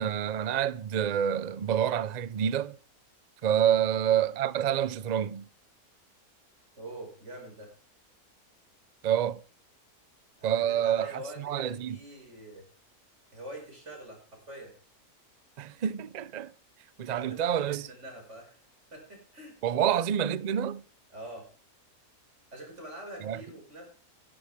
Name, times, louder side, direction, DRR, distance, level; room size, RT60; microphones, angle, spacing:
voice 1, 0.0-2.8 3.4-5.5 9.0-9.4 10.4-11.1 11.4-12.0 15.6-16.5 17.0-17.9 19.6-20.8 23.2-23.4, right 9 dB, 75° right, 0.3 m, -27 dB
voice 2, 6.8-7.7 10.4-12.7 13.3-14.7 17.1-18.6 18.9-20.0 21.1-21.5 22.5-23.9, right 1 dB, 50° right, 6.0 m, -45 dB
16.5 x 12.0 x 3.6 m
omnidirectional pair, 1.6 m